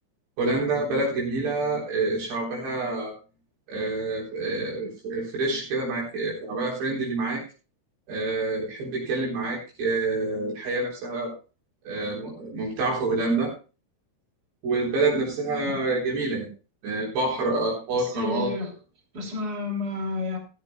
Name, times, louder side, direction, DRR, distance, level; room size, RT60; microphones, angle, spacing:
voice 1, 0.4-3.1 3.7-7.4 8.1-11.3 11.8-13.5 14.6-16.5 16.8-18.5, right 2 dB, 60° right, -4 dB, 5.9 m, -27 dB
voice 2, 18.0-18.7 19.1-20.4, left 3 dB, 25° right, 1 dB, 2.8 m, -31 dB
16.0 x 13.5 x 2.3 m, 0.33 s
omnidirectional pair, 5.5 m